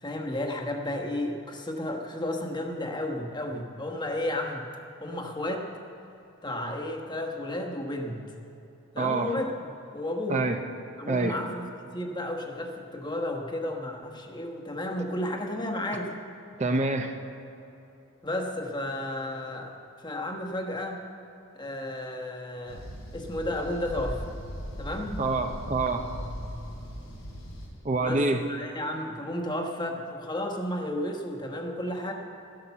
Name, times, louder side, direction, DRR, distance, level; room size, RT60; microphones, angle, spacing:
voice 1, 0.0-4.7 5.0-5.7 6.4-8.2 8.9-10.5 11.0-11.7 11.9-16.1 18.2-19.8 20.0-21.0 21.5-22.9 23.1-24.4 24.8-25.2 28.0-32.1, left 1 dB, 20° left, 2 dB, 1.2 m, -32 dB
voice 2, 9.0-9.3 10.3-10.6 11.0-11.4 16.6-17.1 25.2-26.0 27.8-28.4, right 3 dB, 35° right, 5 dB, 0.7 m, -26 dB
sound 1, 22.7-27.7, equal, 85° left, 4.0 m, -38 dB
12.0 x 11.5 x 7.0 m, 2.9 s
head